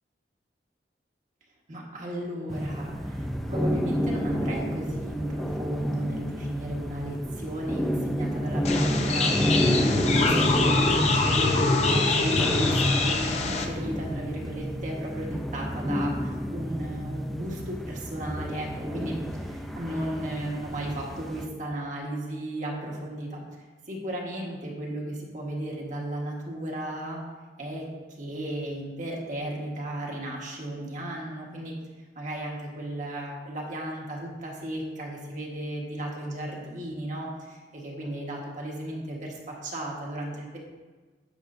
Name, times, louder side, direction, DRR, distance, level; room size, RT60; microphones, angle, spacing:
voice 1, 1.7-9.4 10.1-23.4 23.9-27.2 27.6-27.9 28.2-31.7 32.1-40.6, right 1 dB, 45° right, -2 dB, 1.4 m, -34 dB
sound 1, 2.5-21.5, equal, ahead, 0.4 m, -31 dB
sound 2, 8.6-13.6, left 3 dB, 40° left, 0.7 m, -23 dB
10.0 x 6.5 x 2.6 m, 1.3 s
head